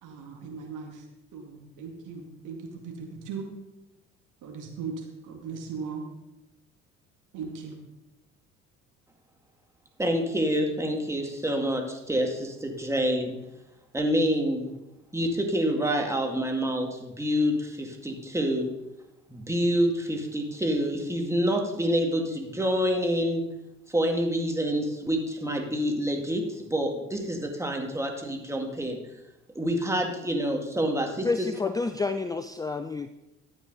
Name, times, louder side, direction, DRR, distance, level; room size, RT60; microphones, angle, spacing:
voice 1, 0.0-1.1 1.3-3.5 4.4-6.0 7.3-7.8, right 5 dB, 55° right, 2 dB, 2.3 m, -38 dB
voice 2, 10.0-13.4 13.9-14.7 15.1-18.7 19.3-23.4 23.9-29.0 29.6-31.5, equal, 5° right, 2 dB, 2.2 m, -27 dB
voice 3, 31.2-33.1, left 3 dB, 10° left, 10 dB, 0.4 m, -29 dB
12.5 x 8.5 x 4.0 m, 0.95 s
figure-of-eight pair, 60°, 37 cm